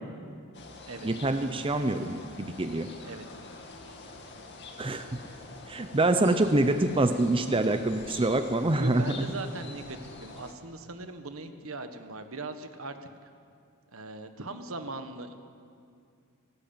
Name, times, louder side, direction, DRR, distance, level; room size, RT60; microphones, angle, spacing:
sound 1, 0.5-10.5, left 3 dB, 55° left, 2.4 m, -46 dB
voice 1, 1.0-2.9 4.8-5.2 5.7-9.3, right 2 dB, 25° right, 8 dB, 0.7 m, -26 dB
voice 2, 8.8-13.0 13.9-15.3, right 2 dB, 70° right, 8 dB, 1.5 m, -39 dB
18.0 x 18.0 x 8.9 m, 2.3 s
head